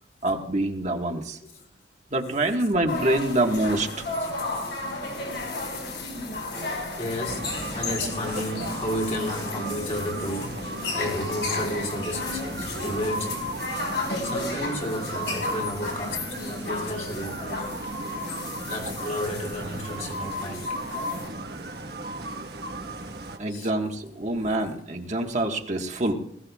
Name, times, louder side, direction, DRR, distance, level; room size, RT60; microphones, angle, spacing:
voice 1, 0.2-1.4 2.1-4.1 6.5-7.0 17.3-17.4 21.1-21.2 23.4-26.1, right 2 dB, 40° right, 1.5 m, -26 dB
sound 1, 2.9-21.3, left 2 dB, 80° left, 5.2 m, -34 dB
voice 2, 7.0-10.7 10.9-13.9 14.2-17.8 18.7-21.1 23.5-23.7, left 1 dB, 40° left, 3.0 m, -32 dB
sound 2, 7.2-23.4, right 1 dB, 65° right, 1.3 m, -35 dB
20.0 x 16.5 x 2.4 m
head